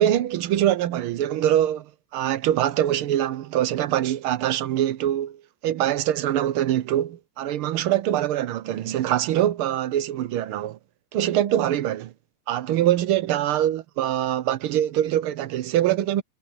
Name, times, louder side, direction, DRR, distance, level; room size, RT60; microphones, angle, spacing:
voice 1, 0.0-10.8 11.1-12.1 12.5-16.2, right 12 dB, 80° right, 1.6 m, -23 dB
omnidirectional pair, 2.4 m